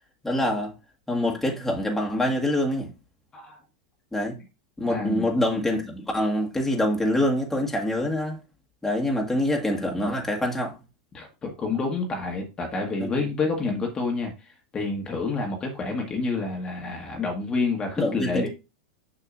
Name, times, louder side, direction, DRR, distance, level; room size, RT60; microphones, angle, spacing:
voice 1, 0.2-0.7 1.1-2.9 4.1-4.4 4.8-8.4 8.8-10.8 13.0-13.3 18.0-18.5, left 1 dB, 5° left, 1.8 m, -25 dB
voice 2, 4.9-5.3 11.1-14.3 14.7-18.5, left 3 dB, 25° left, 1.5 m, -28 dB
6.6 x 6.0 x 2.6 m
hypercardioid pair, 95°, 3 cm